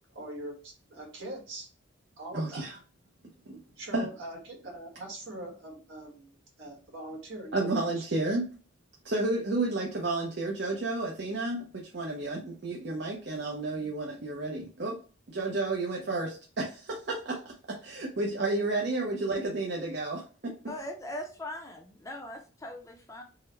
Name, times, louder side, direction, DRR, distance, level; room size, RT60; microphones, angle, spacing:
voice 1, 0.1-1.7 2.2-2.7 3.8-6.3 6.6-8.0, right 1 dB, 80° right, -1 dB, 1.6 m, -42 dB
voice 2, 2.3-2.8 3.5-3.6 3.9-4.1 7.5-8.5 9.0-15.0 15.3-20.5, right 2 dB, 60° right, -1 dB, 0.6 m, -31 dB
voice 3, 20.7-23.2, left 1 dB, 15° left, 3 dB, 0.5 m, -40 dB
3.8 x 2.1 x 4.2 m, 0.38 s
head